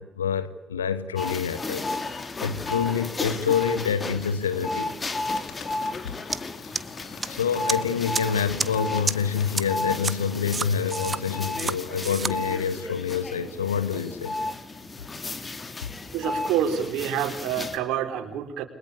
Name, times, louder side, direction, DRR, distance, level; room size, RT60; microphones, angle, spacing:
voice 1, 0.0-1.9 2.1-4.9 7.3-14.3, left 7 dB, 85° left, 13 dB, 1.4 m, -27 dB
sound 1, 1.2-17.8, left 2 dB, 30° left, 3.5 m, -33 dB
Bird, 5.1-12.8, left 7 dB, 55° left, 3.8 m, -47 dB
sound 2, 6.3-6.4 6.8-7.3 7.7-7.8 8.1-8.2 8.6-8.7 9.1-9.2 9.6-9.7 10.0-10.1 10.5-11.2 11.6-11.7 12.0-12.3, right 4 dB, 35° right, 1.6 m, -27 dB
voice 2, 16.1-18.7, right 9 dB, 65° right, 4 dB, 4.0 m, -27 dB
29.5 x 22.5 x 8.4 m, 0.82 s
figure-of-eight pair, 45°, 0 cm